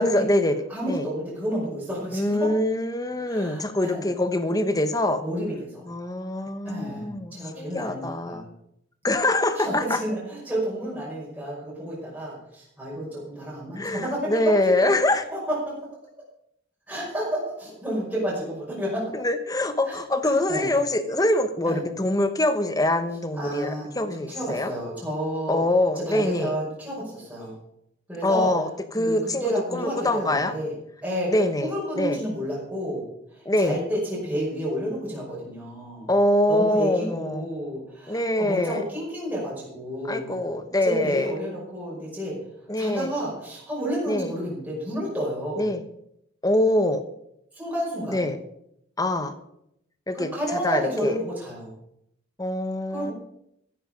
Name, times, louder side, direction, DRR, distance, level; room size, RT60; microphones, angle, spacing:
voice 1, 0.0-0.6 0.9-1.0 2.1-5.2 5.9-8.4 9.0-10.0 13.8-15.2 19.1-24.7 25.5-26.5 28.2-28.7 28.9-29.4 29.7-30.5 31.3-32.2 33.4-33.8 36.1-37.5 38.1-38.8 40.1-41.3 42.7-43.1 44.1-44.3 45.6-45.8 46.4-47.0 48.1-48.4 49.0-49.3 50.1-51.2 52.4-53.1, left 1 dB, 20° left, 9 dB, 1.1 m, -24 dB
voice 2, 0.7-2.5 3.2-4.1 5.2-5.9 6.6-8.5 9.6-14.2 14.8-15.6 16.9-19.1 19.9-20.0 20.2-20.7 21.6-21.8 23.4-25.6 26.1-27.5 28.1-28.5 29.0-30.7 31.0-33.0 33.3-36.1 36.5-40.4 40.8-42.4 42.8-45.7 47.5-48.2 50.1-51.7 52.9-53.1, equal, 10° right, -6 dB, 5.6 m, -30 dB
15.0 x 10.0 x 5.2 m, 0.76 s
head